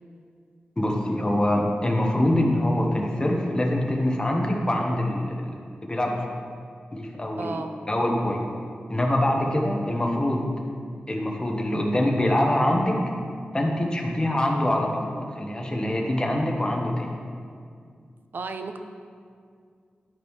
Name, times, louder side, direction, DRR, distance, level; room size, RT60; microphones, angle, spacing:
voice 1, 0.8-5.5 5.9-6.3 6.9-7.6 7.9-8.4 8.9-10.5 11.1-12.9 13.5-17.1, left 1 dB, 25° left, 0 dB, 1.1 m, -24 dB
voice 2, 7.4-7.8 9.3-9.6 18.3-18.8, right 4 dB, 70° right, 7 dB, 0.5 m, -34 dB
10.5 x 5.2 x 3.2 m, 2.2 s
wide cardioid pair, 75°, 4 cm